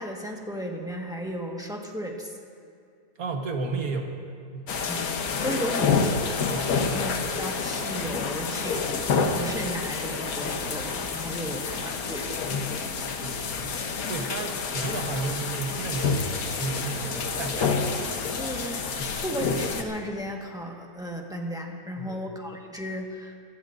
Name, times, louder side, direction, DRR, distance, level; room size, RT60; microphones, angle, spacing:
voice 1, 0.0-2.4 4.8-5.0 5.4-6.3 6.9-12.4 18.3-23.3, equal, 5° right, 0 dB, 1.2 m, -35 dB
voice 2, 3.2-4.1 4.5-4.8 6.6-7.2 11.5-11.6 13.2-13.6 14.1-17.8 19.0-19.2 22.0-22.2, right 3 dB, 65° right, 3 dB, 1.6 m, -33 dB
sound 1, 4.7-19.8, left 5 dB, 65° left, 1.4 m, -28 dB
25.5 x 16.0 x 2.6 m, 2.3 s
omnidirectional pair, 1.7 m